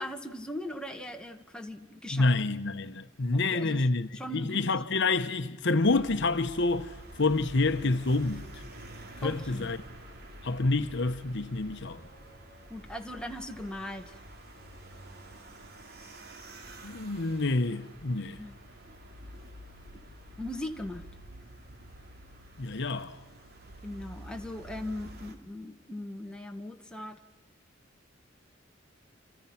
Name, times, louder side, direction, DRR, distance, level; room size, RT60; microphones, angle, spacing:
voice 1, 0.0-2.3 3.3-3.9 4.1-4.7 9.2-9.7 12.7-14.2 18.2-18.6 20.4-21.1 23.8-27.2, left 1 dB, 5° left, 1.7 m, -39 dB
voice 2, 2.1-6.9 7.2-8.6 9.2-9.8 10.4-12.0 16.8-18.4 22.6-23.2, left 3 dB, 65° left, 1.0 m, -28 dB
sound 1, 5.8-25.4, right 1 dB, 55° right, 2.9 m, -48 dB
28.5 x 27.5 x 5.9 m
head